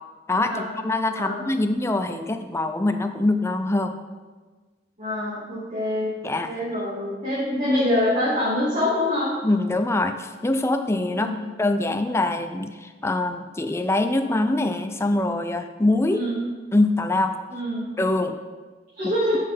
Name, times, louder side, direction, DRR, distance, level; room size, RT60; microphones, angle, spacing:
voice 1, 0.3-3.9 6.2-6.5 9.4-11.3 11.6-16.2 16.7-17.3 18.0-18.4 19.0-19.1, left 2 dB, 15° left, 7 dB, 0.5 m, -23 dB
voice 2, 5.0-6.1 6.4-9.3 11.1-11.4 16.1-16.4 17.5-17.9 19.0-19.4, left 1 dB, 40° right, -9 dB, 2.3 m, -25 dB
11.0 x 5.5 x 3.6 m, 1.4 s
head